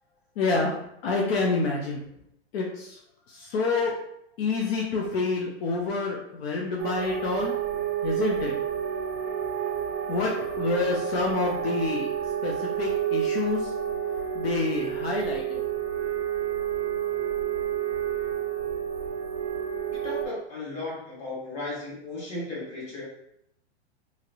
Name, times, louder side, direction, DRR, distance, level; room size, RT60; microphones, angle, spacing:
voice 1, 0.4-0.8 1.0-2.0 2.5-2.9 3.5-3.9 4.4-7.5 8.0-8.5 10.1-12.1 12.4-12.5 12.8-13.6 14.4-15.6, left 3 dB, 60° left, -1 dB, 0.6 m, -27 dB
sound 1, 6.8-20.3, right 9 dB, 30° right, 0.6 m, -30 dB
voice 2, 19.9-23.0, left 2 dB, 20° left, -7 dB, 1.3 m, -35 dB
2.9 x 2.9 x 2.5 m, 0.76 s
hypercardioid pair, 155°, 34 cm